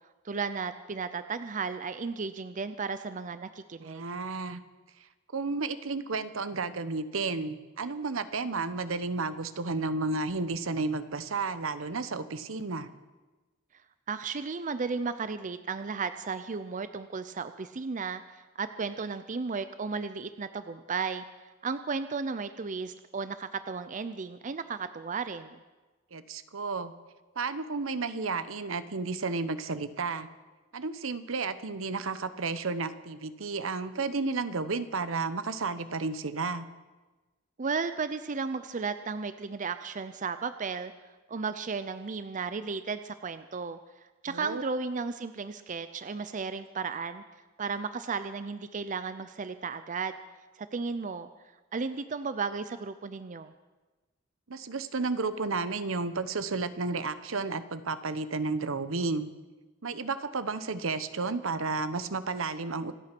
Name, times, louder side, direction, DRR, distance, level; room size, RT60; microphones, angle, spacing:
voice 1, 0.2-4.0 14.1-21.2 21.6-25.6 37.6-40.9 41.3-43.8 44.2-47.2 47.6-50.2 50.6-51.3 51.7-53.5, right 5 dB, 40° right, 12 dB, 0.6 m, -34 dB
voice 2, 3.8-4.6 5.3-12.9 26.1-26.9 27.4-30.3 30.7-36.7 44.3-44.6 54.5-59.3 59.8-62.9, right 3 dB, 75° right, 13 dB, 0.9 m, -32 dB
26.5 x 8.8 x 6.1 m, 1.2 s
head